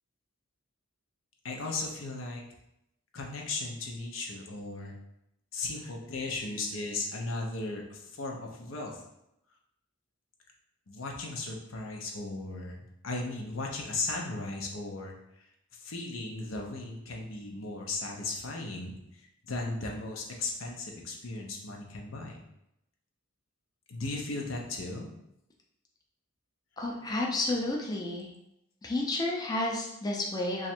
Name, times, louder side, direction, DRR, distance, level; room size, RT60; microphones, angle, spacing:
voice 1, 1.4-2.4 3.1-4.9 5.5-9.0 10.9-15.2 15.8-22.4 23.9-25.1, left 3 dB, 90° left, 0 dB, 0.7 m, -36 dB
voice 2, 26.8-28.3 28.8-30.7, left 2 dB, 20° left, -1 dB, 0.5 m, -31 dB
3.1 x 2.5 x 4.3 m, 0.83 s
head